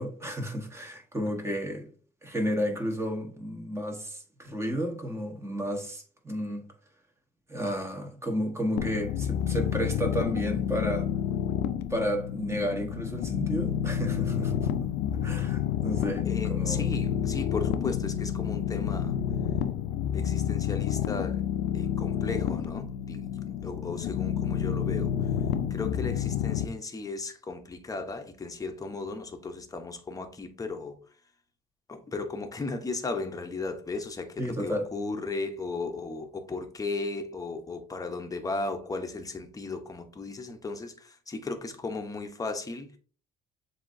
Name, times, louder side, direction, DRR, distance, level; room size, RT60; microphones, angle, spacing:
voice 1, 0.0-1.9 2.2-6.6 7.5-11.1 11.9-14.7 15.2-16.9 34.4-34.9, equal, 15° right, 1.2 m, -32 dB
sound 1, 8.8-26.7, left 9 dB, 90° left, 0.4 m, -29 dB
voice 2, 16.2-19.2 20.1-21.4 21.7-25.1 25.7-31.0 31.9-43.0, left 3 dB, 20° left, 0.8 m, -36 dB
7.2 x 2.8 x 2.6 m
cardioid pair, 110°, 17 cm